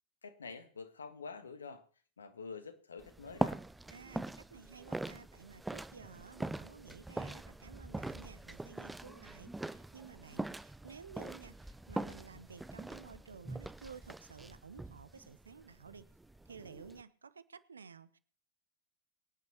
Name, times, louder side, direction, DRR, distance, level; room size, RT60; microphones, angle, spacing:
voice 1, 0.2-1.8 2.2-3.6, left 5 dB, 70° left, 1.6 m, -47 dB
sound 1, 3.0-17.0, right 2 dB, 5° right, 0.5 m, -42 dB
voice 2, 3.9-16.1 16.4-18.2, right 5 dB, 75° right, 0.8 m, -53 dB
24.5 x 9.4 x 3.0 m
figure-of-eight pair, 90°, 0 cm